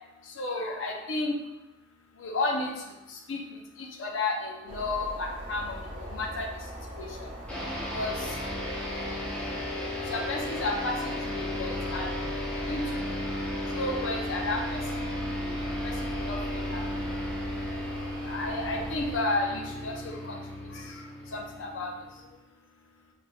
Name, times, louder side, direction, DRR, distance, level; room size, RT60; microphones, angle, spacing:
voice 1, 0.4-1.3 2.2-2.7 3.3-3.4 4.0-6.5 7.0-7.3 7.9-8.3 10.1-12.1 12.7-12.8 13.7-14.8 15.8-16.8 18.2-20.4 20.7-20.8 21.3-21.9, left 2 dB, 80° left, 1 dB, 0.6 m, -32 dB
sound 1, 4.7-19.2, equal, 40° right, 0.7 m, -40 dB
sound 2, 7.5-22.3, left 1 dB, 5° left, 0.6 m, -35 dB
3.3 x 3.3 x 2.2 m, 1.1 s
head